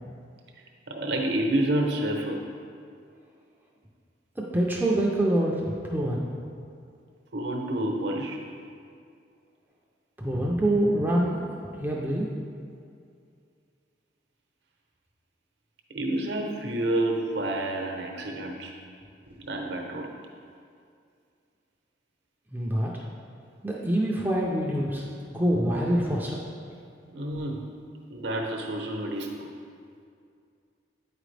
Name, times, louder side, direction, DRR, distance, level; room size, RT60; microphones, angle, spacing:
voice 1, 0.9-2.4 7.3-8.5 15.9-18.7 19.4-20.1 27.1-27.6 28.1-29.5, right 1 dB, 65° right, 1 dB, 0.8 m, -29 dB
voice 2, 4.4-6.3 10.2-12.3 22.5-23.0 23.6-26.4, right 1 dB, 10° right, -4 dB, 0.5 m, -26 dB
8.4 x 5.0 x 3.3 m, 2.3 s
head